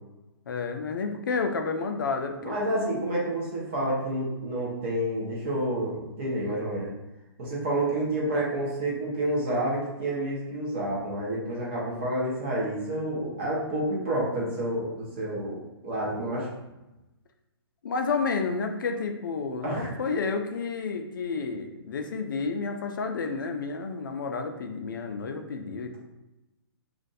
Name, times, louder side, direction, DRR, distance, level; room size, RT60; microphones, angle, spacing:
voice 1, 0.5-3.0 17.8-25.9, left 4 dB, 50° left, 5 dB, 0.4 m, -30 dB
voice 2, 2.4-6.9 7.4-16.5 19.6-19.9, right 1 dB, 25° right, -5 dB, 0.9 m, -29 dB
2.5 x 2.5 x 3.9 m, 0.98 s
hypercardioid pair, 170°, 14 cm